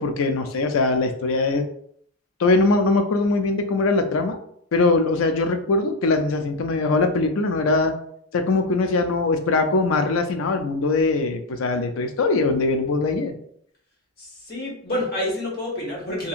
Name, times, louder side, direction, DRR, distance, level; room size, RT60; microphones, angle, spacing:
voice 1, 0.0-1.6 2.4-4.4 4.7-7.9 8.3-13.3, left 3 dB, 90° left, 7 dB, 0.4 m, -21 dB
voice 2, 14.2-16.3, left 1 dB, 50° left, -4 dB, 1.0 m, -28 dB
2.7 x 2.7 x 2.4 m, 0.66 s
head